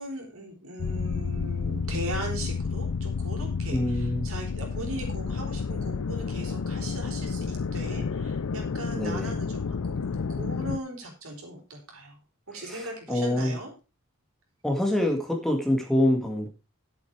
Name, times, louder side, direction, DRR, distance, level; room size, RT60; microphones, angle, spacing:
voice 1, 0.0-12.2 12.5-13.7, right 1 dB, 65° right, 2 dB, 4.4 m, -39 dB
sound 1, 0.8-10.8, left 5 dB, 70° left, 0.5 m, -30 dB
voice 2, 3.7-4.3 8.9-9.4 12.6-13.6 14.6-16.5, left 1 dB, ahead, 2 dB, 1.9 m, -26 dB
11.5 x 8.0 x 4.7 m, 0.30 s
head